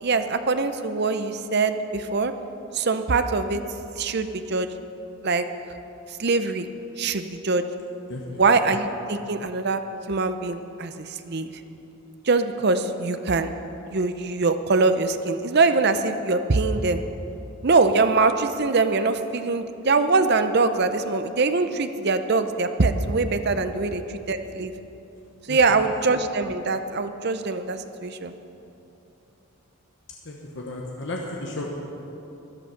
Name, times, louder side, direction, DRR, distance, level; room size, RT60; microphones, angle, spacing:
voice 1, 0.0-2.3 2.7-3.6 4.0-4.7 5.2-5.4 6.1-6.7 7.0-7.6 8.3-9.8 10.1-11.5 12.2-13.5 13.9-17.0 17.6-24.7 25.5-28.3, right 3 dB, 45° right, 9 dB, 0.6 m, -23 dB
voice 2, 8.1-8.4 23.7-23.8 25.5-25.8 30.2-31.7, left 2 dB, 55° left, -1 dB, 1.1 m, -34 dB
13.0 x 11.0 x 5.9 m, 3.0 s
head